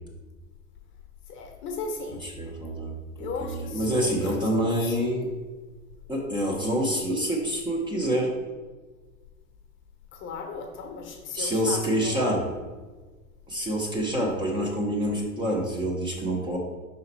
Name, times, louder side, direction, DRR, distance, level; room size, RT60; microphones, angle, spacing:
voice 1, 1.3-2.2 3.2-5.0 10.1-12.4, left 4 dB, 25° left, 3 dB, 0.9 m, -36 dB
voice 2, 2.2-5.3 6.1-8.3 11.3-12.5 13.5-16.6, equal, 10° right, -1 dB, 0.8 m, -27 dB
5.7 x 3.9 x 4.2 m, 1.3 s
figure-of-eight pair, 95°, 44 cm